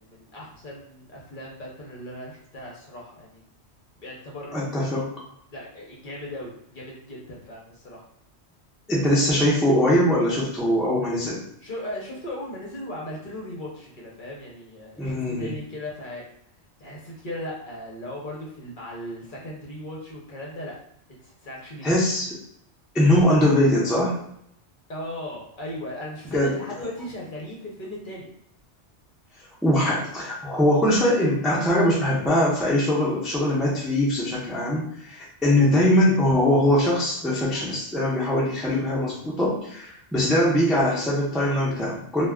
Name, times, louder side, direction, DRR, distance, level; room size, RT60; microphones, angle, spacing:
voice 1, 0.0-3.4 4.0-4.8 5.5-8.0 11.6-16.2 16.8-20.7 21.2-22.0 24.9-28.3, left 1 dB, 50° left, -3 dB, 0.8 m, -37 dB
voice 2, 4.5-5.1 8.9-11.4 15.0-15.6 21.8-22.3 22.9-24.1 26.3-26.6 29.6-42.3, left 1 dB, ahead, -5 dB, 0.4 m, -22 dB
2.3 x 2.2 x 3.4 m, 0.72 s
omnidirectional pair, 1.2 m